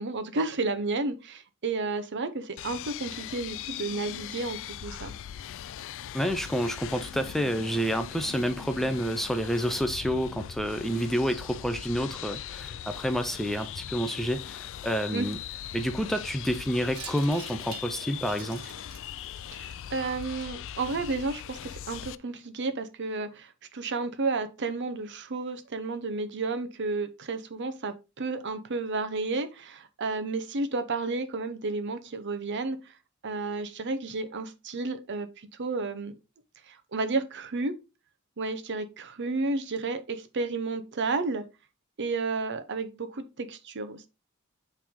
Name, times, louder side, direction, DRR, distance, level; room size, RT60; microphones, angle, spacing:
voice 1, 0.0-5.1 15.1-15.3 19.5-32.8 33.2-35.3 35.6-36.2 36.7-37.7 38.4-41.4 42.0-44.1, right 3 dB, 55° right, 0.7 m, -32 dB
sound 1, 2.6-22.2, left 10 dB, 60° left, 0.3 m, -40 dB
voice 2, 6.1-15.4 15.7-18.7, equal, ahead, 0.5 m, -29 dB
Wind chime, 16.9-21.6, right 7 dB, 80° right, 1.0 m, -48 dB
8.7 x 3.4 x 3.6 m
head